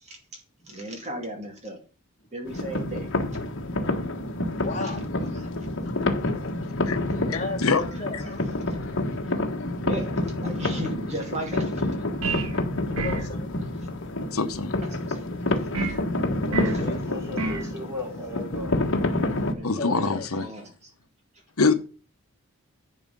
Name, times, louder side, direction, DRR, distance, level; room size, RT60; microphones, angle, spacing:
voice 1, 0.7-1.8 2.3-3.1 5.4-5.5 9.8-11.9 12.9-13.0 14.9-15.0 15.8-15.9 19.5-20.7, right 1 dB, 30° right, 3 dB, 2.3 m, -35 dB
sound 1, 2.5-19.5, left 2 dB, 60° left, 1.5 m, -28 dB
voice 2, 4.6-5.0 7.3-8.4 13.0-13.5 16.8-17.2 19.8-20.3, left 2 dB, 30° left, 0 dB, 2.9 m, -34 dB
voice 3, 7.3-7.8 8.1-8.2 14.3-14.7 19.6-20.5 21.6-21.7, left 4 dB, 75° left, 8 dB, 1.0 m, -24 dB
sound 2, 12.2-12.6 13.0-13.3 15.7-16.0 16.5-16.8 17.4-17.7, right 3 dB, 75° right, 1.5 m, -29 dB
voice 4, 16.5-18.7, left 1 dB, 15° right, -1 dB, 4.5 m, -36 dB
11.0 x 5.6 x 5.4 m, 0.36 s
head